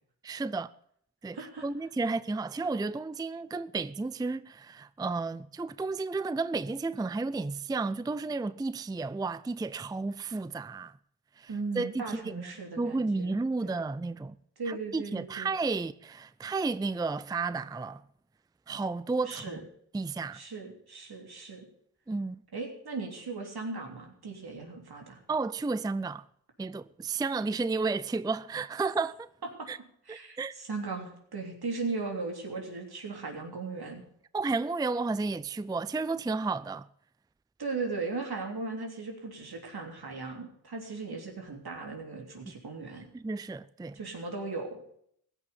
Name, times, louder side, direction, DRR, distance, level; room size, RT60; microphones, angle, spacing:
voice 1, 0.2-0.7 1.2-11.0 11.4-14.4 14.7-18.0 18.7-19.6 19.9-20.4 22.1-22.4 25.3-26.3 26.6-29.3 29.7-29.8 30.1-30.5 34.3-36.9 42.5-42.6 43.1-44.0, right 3 dB, 10° right, 0.4 m, -32 dB
voice 2, 1.3-1.6 11.5-13.3 13.6-13.7 14.6-15.5 19.3-19.6 20.3-21.7 22.5-25.2 30.1-34.0 37.6-43.1 43.9-44.8, right 3 dB, 70° right, 3.3 m, -37 dB
16.0 x 6.2 x 9.5 m
cardioid pair, 50°, 39 cm